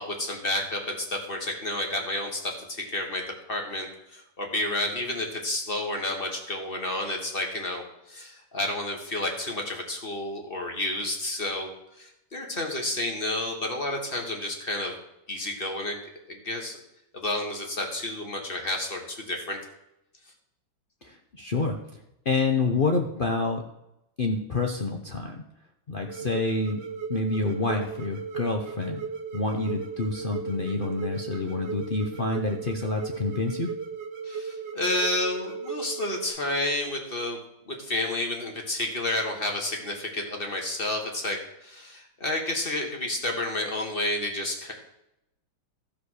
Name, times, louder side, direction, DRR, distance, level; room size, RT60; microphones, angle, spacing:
voice 1, 0.0-3.2 3.5-14.9 15.3-16.0 16.3-16.8 17.1-19.6 34.2-37.4 37.7-44.7, left 1 dB, 25° left, 2 dB, 1.7 m, -30 dB
voice 2, 21.0-21.8 22.2-23.6 24.2-25.4 25.9-26.8 27.1-29.0 29.3-33.7, left 3 dB, 85° left, 2 dB, 0.4 m, -28 dB
sound 1, 26.1-36.3, right 5 dB, 60° right, 1.6 m, -36 dB
14.5 x 5.2 x 6.4 m, 0.86 s
omnidirectional pair, 2.3 m